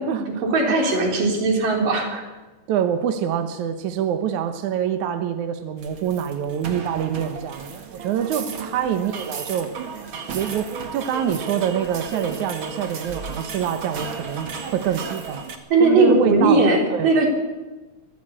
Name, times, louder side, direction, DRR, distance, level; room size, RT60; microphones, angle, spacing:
voice 1, 0.3-2.2 8.4-8.6 15.7-17.3, right 3 dB, 90° right, 2 dB, 5.4 m, -19 dB
voice 2, 2.7-9.7 10.3-15.4 15.8-16.6 16.9-17.1, right 9 dB, 70° right, 8 dB, 2.4 m, -25 dB
sound 1, 5.8-15.6, right 5 dB, 45° right, 2.3 m, -34 dB
23.5 x 15.0 x 8.8 m, 1.2 s
omnidirectional pair, 3.7 m